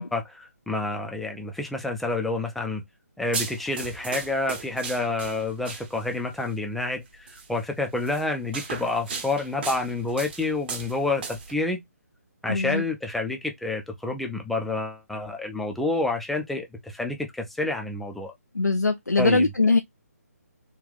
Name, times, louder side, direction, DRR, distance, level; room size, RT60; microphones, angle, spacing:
voice 1, 0.0-2.8 3.2-11.8 12.4-18.3 19.2-19.5, left 2 dB, ahead, 0.5 m, -29 dB
sound 1, 3.3-6.2 7.3-7.5 8.0-11.5, right 5 dB, 35° right, 1.0 m, -36 dB
voice 2, 12.5-12.8 18.5-19.8, left 3 dB, 90° left, 0.4 m, -21 dB
3.7 x 2.5 x 3.3 m
figure-of-eight pair, 140°, 9 cm